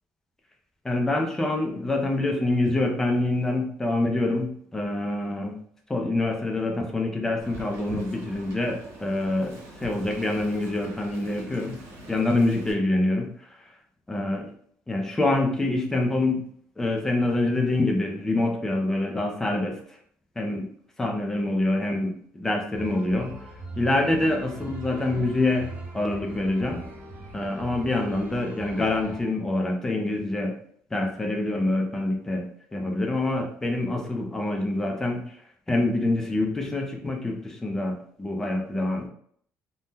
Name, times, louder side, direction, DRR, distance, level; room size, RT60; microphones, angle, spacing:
voice 1, 0.8-5.6 5.9-9.5 9.8-11.8 12.1-13.3 14.1-14.5 14.9-16.4 16.8-19.8 20.4-20.7 21.0-23.4 23.8-26.8 27.3-30.6 30.9-35.4 35.7-39.1, left 2 dB, 10° left, 2 dB, 0.4 m, -26 dB
Wind, 7.4-12.7, right 2 dB, 60° right, 1.0 m, -43 dB
sound 1, 22.7-29.2, right 2 dB, 30° right, 0.7 m, -41 dB
2.7 x 2.1 x 3.5 m, 0.62 s
cardioid pair, 175°, 5 cm